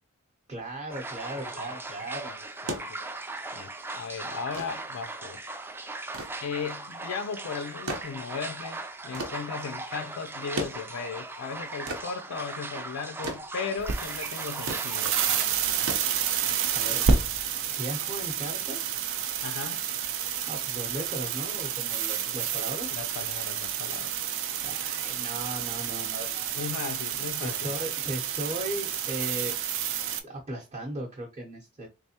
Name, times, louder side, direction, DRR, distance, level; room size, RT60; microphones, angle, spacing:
voice 1, 0.5-2.3 16.7-17.0 17.8-19.0 20.5-23.0 24.6-26.7 27.4-29.5 30.2-31.9, right 1 dB, 30° right, 0.8 m, -37 dB
sound 1, 0.9-15.5, right 2 dB, 10° right, 0.3 m, -39 dB
voice 2, 1.4-1.7 2.2-2.4 2.6-3.0 3.5-5.5 6.4-15.1 19.4-19.9 22.2-22.4 22.9-24.2 26.6-27.7, left 6 dB, 75° left, 0.4 m, -37 dB
sound 2, 2.6-17.9 19.2-19.3, right 1 dB, 85° right, 0.9 m, -40 dB
sound 3, 13.8-30.2, right 7 dB, 65° right, 0.5 m, -30 dB
3.4 x 3.3 x 2.8 m
head